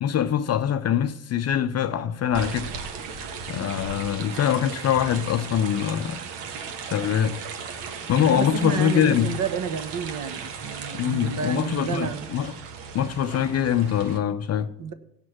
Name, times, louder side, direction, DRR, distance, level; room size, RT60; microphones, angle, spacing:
voice 1, 0.0-2.7 3.5-6.2 6.8-7.4 8.1-9.4 10.9-12.6 12.9-14.7, left 9 dB, 35° left, 0.6 m, -23 dB
sound 1, 2.3-14.2, right 6 dB, 60° right, 1.5 m, -36 dB
voice 2, 8.3-12.3 14.8-14.9, right 6 dB, 40° right, 1.2 m, -30 dB
17.0 x 6.2 x 5.9 m
figure-of-eight pair, 55°, 47 cm